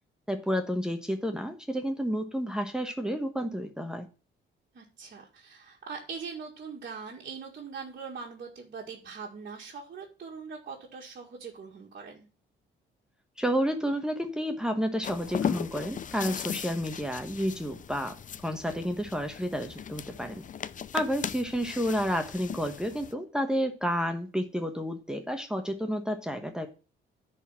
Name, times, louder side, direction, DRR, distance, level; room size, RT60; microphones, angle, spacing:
voice 1, 0.3-4.1 13.4-18.1 18.4-20.3 20.9-26.7, equal, 5° right, 4 dB, 1.2 m, -30 dB
voice 2, 4.7-12.3, right 5 dB, 50° right, -3 dB, 2.0 m, -42 dB
sound 1, 15.0-23.1, left 8 dB, 40° left, 0.6 m, -37 dB
10.0 x 4.3 x 7.5 m, 0.35 s
cardioid pair, 90°, 20 cm